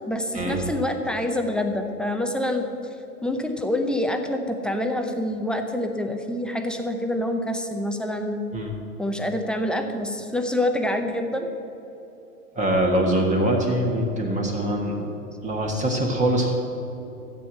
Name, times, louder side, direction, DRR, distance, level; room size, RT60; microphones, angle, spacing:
voice 1, 0.1-2.6 3.2-8.4 9.0-11.5, left 1 dB, ahead, 4 dB, 0.6 m, -26 dB
voice 2, 12.5-15.0 15.4-16.5, right 1 dB, 15° right, 1 dB, 1.4 m, -23 dB
13.0 x 8.4 x 7.4 m, 3.0 s
hypercardioid pair, 125°, 45 cm